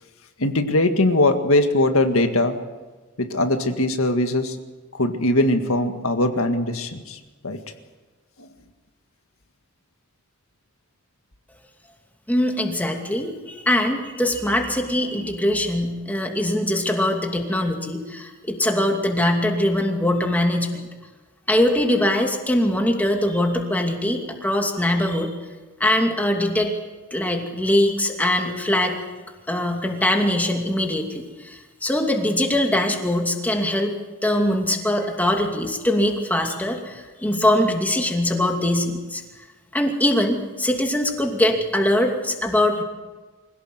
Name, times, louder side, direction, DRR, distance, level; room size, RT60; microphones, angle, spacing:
voice 1, 0.4-2.5 3.2-4.6 5.0-7.2 7.4-7.6 8.4-8.5, left 1 dB, 75° left, 6 dB, 1.9 m, -20 dB
voice 2, 12.3-20.9 21.5-25.3 25.8-26.7 27.1-29.0 29.5-34.0 34.2-39.2 39.7-42.8, left 1 dB, 10° left, 2 dB, 2.5 m, -22 dB
25.0 x 17.0 x 8.0 m, 1.3 s
head